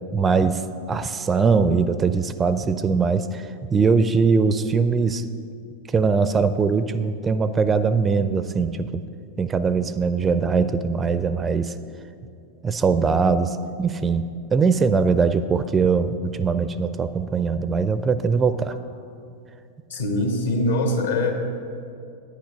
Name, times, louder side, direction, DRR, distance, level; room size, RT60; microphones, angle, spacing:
voice 1, 0.1-0.6 0.9-5.2 5.9-9.0 9.4-11.8 12.6-18.8, right 5 dB, 20° right, 13 dB, 0.4 m, -21 dB
voice 2, 19.9-21.3, left 2 dB, 70° left, 3 dB, 1.5 m, -22 dB
10.0 x 8.5 x 5.1 m, 2.5 s
figure-of-eight pair, 90°, 0 cm